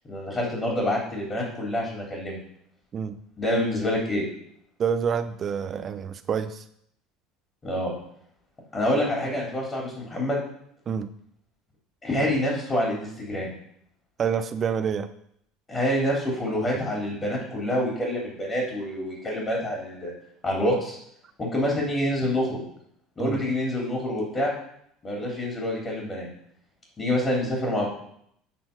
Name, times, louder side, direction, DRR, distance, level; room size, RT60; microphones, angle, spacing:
voice 1, 0.1-2.4 3.4-4.2 7.6-7.9 8.7-10.4 12.0-13.5 15.7-20.1 20.4-21.0 21.4-22.6 23.2-24.5 25.0-26.3 27.0-27.9, left 1 dB, 25° left, -2 dB, 3.4 m, -27 dB
voice 2, 4.8-6.6 10.9-11.1 14.2-15.1 23.2-23.4, right 7 dB, 35° right, 10 dB, 0.7 m, -27 dB
13.0 x 4.4 x 5.3 m, 0.71 s
figure-of-eight pair, 70°, 0 cm